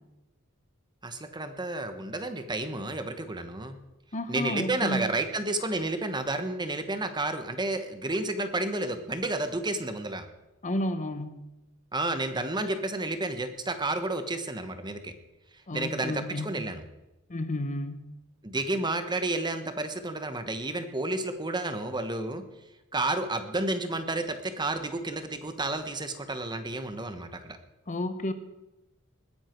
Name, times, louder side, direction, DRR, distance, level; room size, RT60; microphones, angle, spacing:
voice 1, 1.0-3.8 4.3-10.2 11.9-15.1 15.7-16.8 18.4-22.4 22.9-27.6, right 2 dB, 20° right, 8 dB, 1.2 m, -31 dB
voice 2, 4.1-5.1 10.6-11.4 15.7-16.5 17.3-18.1 27.9-28.3, left 1 dB, 35° left, 9 dB, 1.0 m, -31 dB
21.0 x 10.0 x 4.5 m, 0.98 s
head